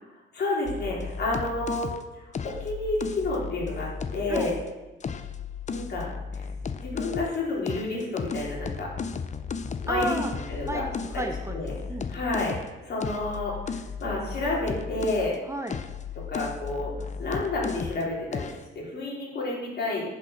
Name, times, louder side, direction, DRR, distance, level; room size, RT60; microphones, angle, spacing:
voice 1, 0.3-2.0 2.4-4.6 5.7-6.1 6.3-6.4 6.8-8.9 9.8-10.2 10.5-10.8 11.5-11.7 12.1-12.5 12.8-15.4 16.2-16.9 17.2-20.0, left 2 dB, 55° left, -4 dB, 3.8 m, -30 dB
sound 1, 0.7-4.6 5.0-7.4 7.7-15.3 15.7-18.0 18.3-18.6, left 5 dB, 35° left, 0.7 m, -35 dB
voice 2, 9.9-10.3 10.7-11.6 11.9-12.2 15.4-15.8, right 1 dB, 15° right, 4 dB, 0.9 m, -31 dB
9.6 x 5.6 x 6.6 m, 1.1 s
cardioid pair, 90°, 20 cm